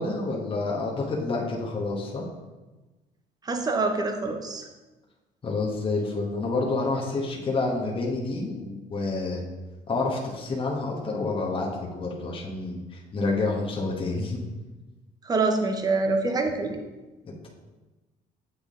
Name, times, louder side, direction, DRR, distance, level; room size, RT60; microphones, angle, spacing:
voice 1, 0.0-2.2 5.4-9.4 9.9-14.4 17.2-17.5, left 3 dB, 30° left, -2 dB, 1.1 m, -28 dB
voice 2, 3.4-4.7 15.2-16.8, right 3 dB, 20° right, 4 dB, 0.8 m, -25 dB
8.3 x 3.7 x 3.7 m, 1.2 s
cardioid pair, 110°, 17 cm